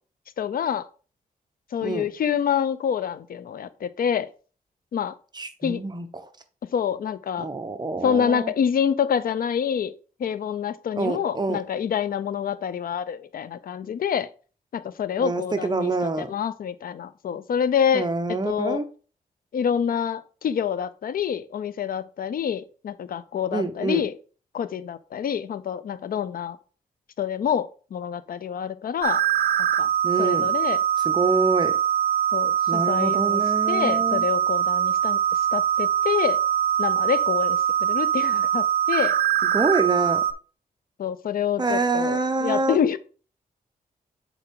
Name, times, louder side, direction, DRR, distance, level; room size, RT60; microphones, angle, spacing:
voice 1, 0.4-0.9 1.7-4.3 4.9-5.1 5.6-5.8 6.7-7.5 8.0-9.9 10.2-14.3 14.7-15.9 16.2-18.8 19.5-24.1 24.5-26.6 27.2-29.2 29.6-29.9 30.2-30.8 32.3-33.4 33.7-35.2 35.5-36.4 36.8-39.2 41.0-43.0, left 8 dB, 70° left, 15 dB, 0.5 m, -27 dB
voice 2, 5.3-6.3 7.4-8.5 11.0-11.6 15.2-16.3 17.9-18.8 23.5-24.0 30.0-30.5 31.0-31.8 32.7-34.3 39.5-40.2 41.6-42.8, right 3 dB, 30° right, 8 dB, 0.8 m, -26 dB
sound 1, 29.0-40.3, right 10 dB, 75° right, 0.5 m, -23 dB
6.9 x 4.5 x 3.7 m, 0.38 s
wide cardioid pair, 100°, 15 cm